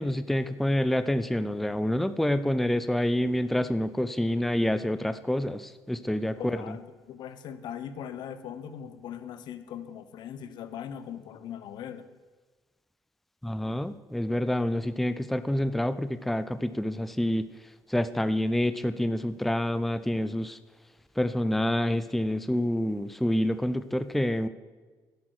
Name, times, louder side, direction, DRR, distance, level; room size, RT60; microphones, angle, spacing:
voice 1, 0.0-6.8 13.4-17.5 17.9-20.6 21.2-24.5, left 1 dB, ahead, 11 dB, 0.5 m, -27 dB
voice 2, 6.4-12.1, left 9 dB, 70° left, 11 dB, 1.0 m, -40 dB
11.0 x 8.2 x 6.2 m, 1.4 s
cardioid pair, 90°, 8 cm